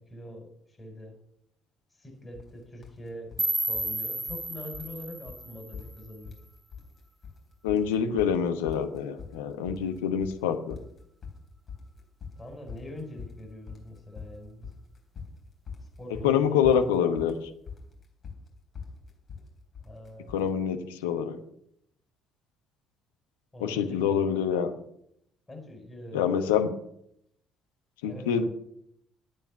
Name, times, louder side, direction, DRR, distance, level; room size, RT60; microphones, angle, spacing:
voice 1, 0.1-0.5 0.8-1.1 2.0-6.4 12.4-14.7 16.0-16.7 19.8-20.3 23.5-24.3 25.5-26.3 28.0-28.5, left 1 dB, 20° left, 4 dB, 4.5 m, -43 dB
sound 1, 2.3-2.5 2.8-3.5 3.7-4.5 4.7-5.0 5.3-5.4 5.7-6.5 6.7-7.4 7.7-20.5, left 5 dB, 40° left, 3.7 m, -44 dB
sound 2, 3.4-6.4, right 1 dB, 15° right, 0.6 m, -32 dB
voice 2, 7.6-10.8 16.2-17.3 20.3-21.4 23.6-24.7 26.1-26.7 28.0-28.4, left 8 dB, 75° left, 7 dB, 1.1 m, -26 dB
11.5 x 9.0 x 7.0 m, 0.73 s
figure-of-eight pair, 50°, 0 cm